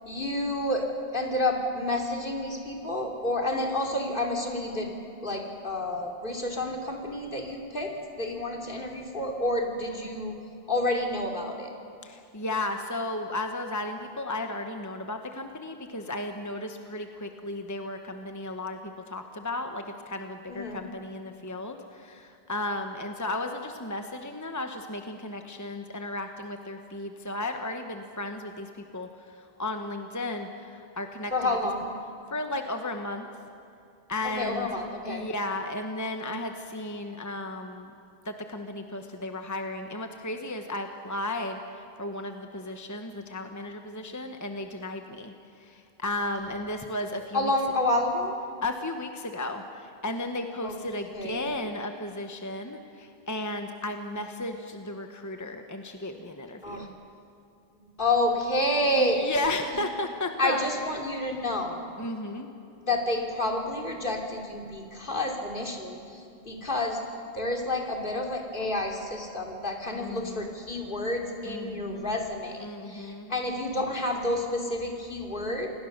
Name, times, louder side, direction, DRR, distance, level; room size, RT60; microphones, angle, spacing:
voice 1, 0.0-0.9 1.1-4.9 5.2-10.4 10.7-11.7 20.5-20.8 31.3-31.9 34.4-35.3 47.3-48.4 50.6-50.7 51.1-51.5 56.6-56.9 58.0-59.3 60.4-61.9 62.9-67.0 67.3-75.7, left 1 dB, 55° left, 0 dB, 3.0 m, -29 dB
voice 2, 12.0-31.3 32.3-33.3 34.1-34.7 35.0-37.9 38.2-47.5 48.6-56.9 58.9-60.7 62.0-62.5 69.9-70.5 71.4-72.1 72.6-73.3, left 2 dB, 20° left, 5 dB, 1.1 m, -34 dB
27.5 x 19.0 x 6.6 m, 2.5 s
omnidirectional pair, 1.0 m